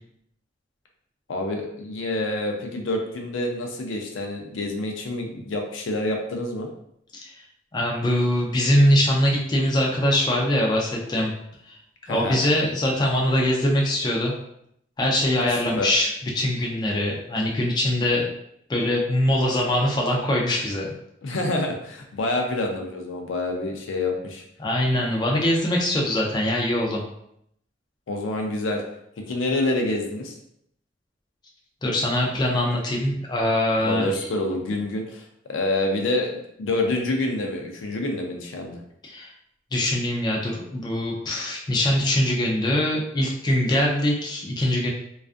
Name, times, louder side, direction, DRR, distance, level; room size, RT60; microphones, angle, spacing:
voice 1, 1.3-6.7 12.1-12.4 15.5-15.9 21.2-24.4 28.1-28.8 29.3-30.3 33.8-38.8, left 2 dB, 80° left, 2 dB, 0.5 m, -27 dB
voice 2, 7.7-11.3 11.7-11.8 12.1-14.3 15.0-16.1 16.3-18.3 18.7-20.9 24.6-27.0 31.8-34.1 39.0-39.3 39.7-44.9, left 1 dB, 20° left, -2 dB, 0.3 m, -22 dB
2.4 x 2.4 x 2.4 m, 0.74 s
head